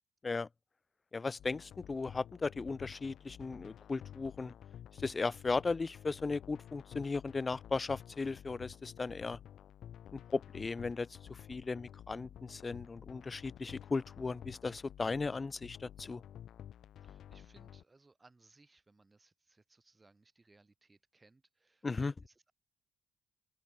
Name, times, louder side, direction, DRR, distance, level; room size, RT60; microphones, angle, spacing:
voice 1, 1.1-4.5 5.0-9.4 10.1-16.2 21.8-22.1, left 4 dB, 30° left, 0.5 m, -36 dB
sound 1, 1.4-17.8, left 10 dB, 70° left, 2.5 m, -52 dB
voice 2, 17.0-22.5, right 3 dB, 20° right, 3.8 m, -66 dB
open air
cardioid pair, 90°, 0 cm